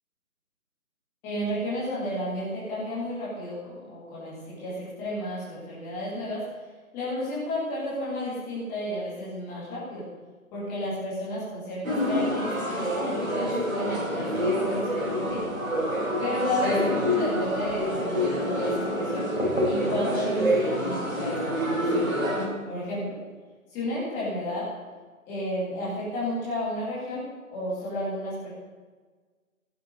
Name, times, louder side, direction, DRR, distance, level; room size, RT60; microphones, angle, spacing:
voice 1, 1.2-6.5 6.9-10.0 10.5-15.5 16.2-19.3 19.6-22.1 22.7-23.2 23.7-24.7 25.3-27.2 27.5-28.5, left 1 dB, 5° left, -8 dB, 2.1 m, -32 dB
sound 1, 11.8-22.5, equal, 65° right, 4.4 m, -27 dB
15.0 x 7.3 x 6.6 m, 1.4 s
figure-of-eight pair, 160°, 43 cm